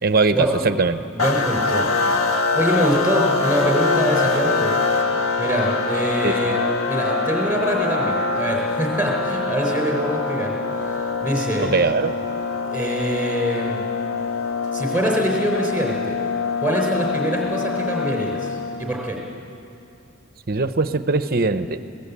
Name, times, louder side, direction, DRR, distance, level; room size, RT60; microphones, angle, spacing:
voice 1, 0.0-1.0 6.2-6.4 11.6-12.2 20.5-21.8, right 3 dB, 45° right, 11 dB, 0.8 m, -20 dB
voice 2, 1.1-1.9 2.5-4.7 5.4-6.6 6.9-10.5 10.8-11.7 12.7-13.8 14.7-16.2 16.6-19.2, right 1 dB, 5° right, 0 dB, 4.4 m, -24 dB
sound 1, 1.2-19.0, left 4 dB, 85° left, 1.6 m, -24 dB
26.0 x 18.0 x 8.5 m, 2.7 s
head